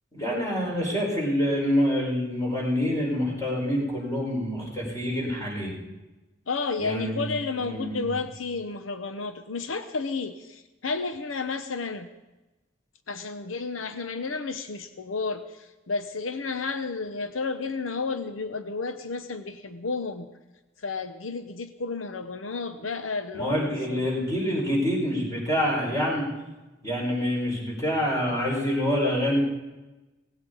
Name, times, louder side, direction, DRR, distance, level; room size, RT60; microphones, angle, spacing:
voice 1, 0.1-5.7 6.8-7.3 7.6-8.1 23.3-26.3 26.8-29.4, equal, 20° left, -2 dB, 5.1 m, -26 dB
voice 2, 6.5-12.1 13.1-20.3 20.8-24.1, left 4 dB, 90° left, 9 dB, 0.8 m, -32 dB
17.5 x 16.5 x 4.0 m, 1.1 s
head